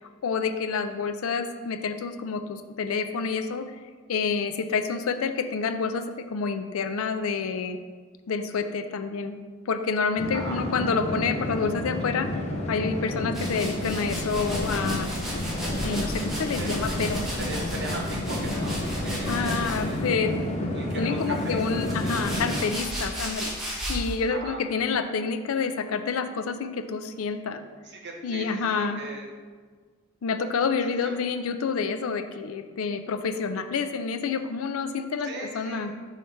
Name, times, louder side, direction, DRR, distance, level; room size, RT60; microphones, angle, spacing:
voice 1, 0.2-3.7 4.1-7.8 8.3-9.4 9.7-12.3 12.7-15.1 15.8-17.3 19.3-20.3 20.9-23.5 23.9-27.6 28.2-29.0 30.2-35.9, left 5 dB, 85° left, 9 dB, 0.4 m, -28 dB
sound 1, 10.2-22.6, left 1 dB, 30° left, 0.6 m, -30 dB
sound 2, 13.3-20.1 20.9-24.2, equal, ahead, 1.3 m, -34 dB
voice 2, 17.4-20.0 20.7-22.1 24.3-24.6 27.8-29.3 30.8-31.2 35.2-36.1, right 2 dB, 55° right, 0 dB, 1.0 m, -39 dB
5.6 x 3.2 x 5.4 m, 1.5 s
head